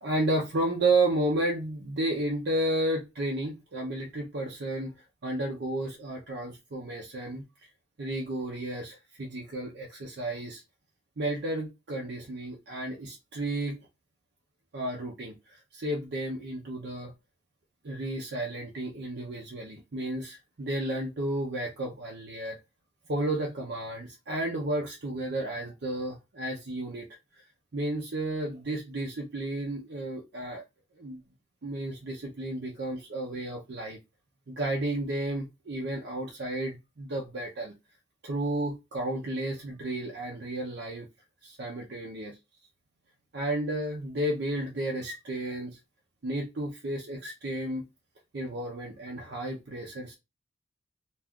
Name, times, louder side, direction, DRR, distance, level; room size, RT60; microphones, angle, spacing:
voice 1, 0.0-5.0 5.2-7.4 8.0-10.6 11.2-13.8 14.7-17.1 17.8-22.6 23.1-27.1 27.3-27.4 27.7-30.6 31.0-31.2 31.6-34.0 34.5-37.7 38.2-41.1 41.4-42.3 43.3-45.8 46.2-47.9 48.3-50.1, right 1 dB, 55° right, 0.6 m, -32 dB
2.4 x 2.3 x 3.5 m
head